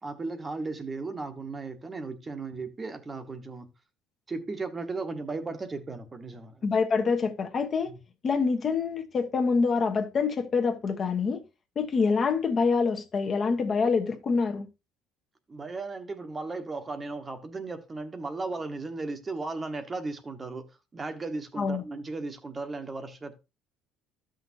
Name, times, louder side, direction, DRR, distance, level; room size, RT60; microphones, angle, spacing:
voice 1, 0.0-3.7 4.3-6.6 15.5-20.7 20.9-23.4, right 3 dB, 20° right, 1.1 m, -36 dB
voice 2, 6.6-7.9 8.2-11.4 11.8-14.7 21.6-21.8, left 5 dB, 35° left, 1.1 m, -26 dB
13.5 x 6.3 x 2.7 m
cardioid pair, 130°, 0 cm